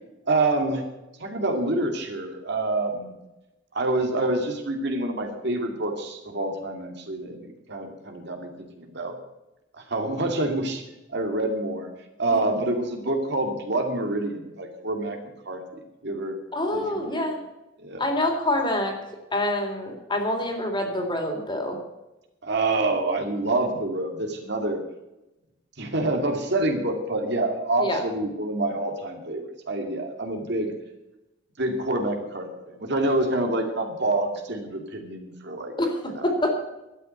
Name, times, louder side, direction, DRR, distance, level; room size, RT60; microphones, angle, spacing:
voice 1, 0.3-0.8 1.2-3.1 3.7-9.2 9.8-10.8 11.1-11.9 12.2-15.2 15.5-15.6 16.0-16.4 16.7-17.3 17.8-18.0 22.4-24.8 25.8-30.7 31.6-35.7 36.1-36.3, right 2 dB, 60° right, 4 dB, 2.5 m, -27 dB
voice 2, 16.5-17.4 18.0-19.0 19.3-21.8 27.8-28.0 35.8-36.0 36.2-36.6, left 1 dB, 25° left, 2 dB, 3.4 m, -26 dB
12.5 x 9.3 x 8.1 m, 0.97 s
head